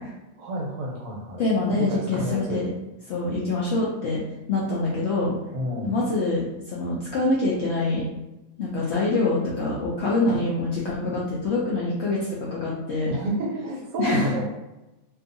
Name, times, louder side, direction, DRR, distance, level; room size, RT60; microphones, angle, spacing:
voice 1, 0.4-1.4 1.8-2.6 5.5-6.0 13.1-14.4, equal, 70° right, -1 dB, 1.0 m, -29 dB
voice 2, 1.4-2.7 3.1-4.2 4.5-5.4 5.8-8.0 8.6-13.2 14.0-14.3, left 2 dB, 65° left, -5 dB, 0.7 m, -25 dB
2.6 x 2.3 x 2.5 m, 1.0 s
omnidirectional pair, 1.5 m